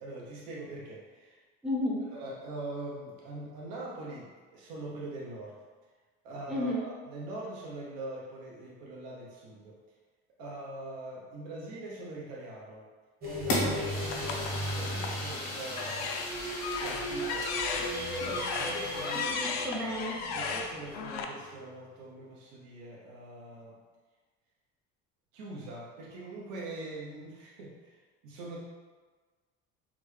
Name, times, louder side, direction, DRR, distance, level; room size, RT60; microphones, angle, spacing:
voice 1, 0.0-1.4 2.1-5.6 6.2-9.8 10.4-12.9 13.2-19.3 20.3-23.8 25.3-28.0 28.2-28.6, right 2 dB, 85° right, -4 dB, 0.8 m, -43 dB
voice 2, 1.6-2.1 6.5-6.9 18.2-18.4 19.3-20.2, left 1 dB, ahead, -5 dB, 0.4 m, -32 dB
sound 1, 13.2-21.3, right 1 dB, 30° right, 0.9 m, -38 dB
Fire, 13.5-19.4, left 1 dB, 90° left, 1.2 m, -37 dB
sound 2, 14.1-15.2 15.7-21.2, left 5 dB, 60° left, 0.4 m, -36 dB
3.7 x 2.3 x 3.1 m, 1.4 s
cardioid pair, 140°, 30 cm